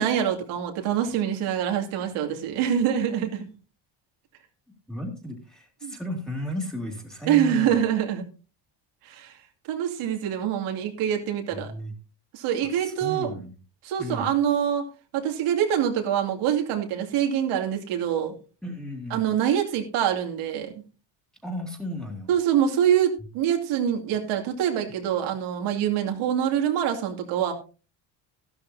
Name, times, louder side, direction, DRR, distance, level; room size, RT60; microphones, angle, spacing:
voice 1, 0.0-3.4 5.8-6.0 7.3-8.2 9.0-9.4 9.7-11.7 12.3-13.3 13.8-14.9 15.1-18.3 19.1-20.8 22.3-27.5, right 9 dB, 80° right, 3 dB, 2.7 m, -25 dB
voice 2, 4.9-7.8 11.7-11.9 12.8-13.5 14.0-14.3 18.6-19.2 21.4-22.3, equal, ahead, 0 dB, 2.7 m, -34 dB
14.0 x 12.5 x 2.7 m, 0.34 s
cardioid pair, 135°, 49 cm